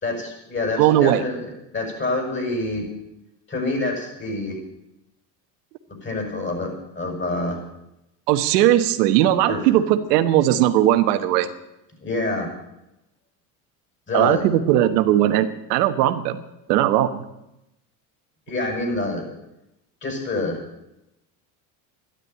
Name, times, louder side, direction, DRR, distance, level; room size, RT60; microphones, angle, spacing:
voice 1, 0.0-2.8 3.5-4.5 6.0-7.6 9.5-9.6 12.0-12.5 14.1-14.5 18.5-19.2 20.0-20.6, left 2 dB, 25° left, 3 dB, 6.6 m, -26 dB
voice 2, 0.8-1.2 8.3-11.5 14.1-16.4 16.7-17.2, right 12 dB, 85° right, 8 dB, 1.4 m, -18 dB
13.0 x 11.5 x 9.3 m, 0.88 s
supercardioid pair, 115°, 47 cm